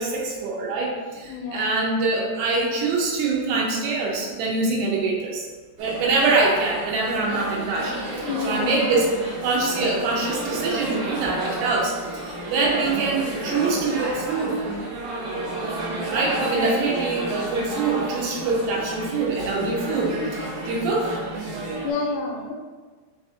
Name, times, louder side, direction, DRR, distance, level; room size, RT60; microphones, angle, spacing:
voice 1, 0.0-5.5 5.8-7.9 8.4-9.1 9.4-11.9 12.2-14.6 16.1-21.1, right 3 dB, 85° right, -2 dB, 2.8 m, -24 dB
voice 2, 1.1-1.8 8.1-8.8 16.4-16.5 21.8-22.5, left 4 dB, 85° left, 1 dB, 2.7 m, -30 dB
sound 1, 5.8-21.9, right 2 dB, 70° right, 2.0 m, -31 dB
6.3 x 2.4 x 2.6 m, 1.4 s
omnidirectional pair, 4.7 m